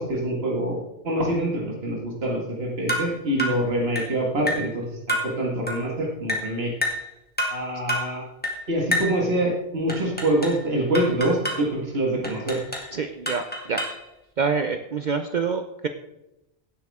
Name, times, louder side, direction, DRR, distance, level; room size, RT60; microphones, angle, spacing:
voice 1, 0.0-6.7 7.5-8.2 8.7-12.6, right 1 dB, 70° right, -1 dB, 2.2 m, -25 dB
sound 1, 2.9-3.1 3.4-3.6 4.0-4.1 4.5-4.7 5.1-5.3 5.7-5.8 6.3-6.5 6.8-7.1 7.4-7.6 7.9-8.1 8.4-8.6 8.9-9.2 9.9-10.6 10.9-11.6 12.2-12.9 13.3-14.0, equal, 10° left, 2.0 m, -28 dB
voice 2, 12.9-13.9 14.4-15.9, right 5 dB, 50° right, 7 dB, 0.7 m, -26 dB
16.5 x 8.3 x 3.6 m, 0.92 s
omnidirectional pair, 1.1 m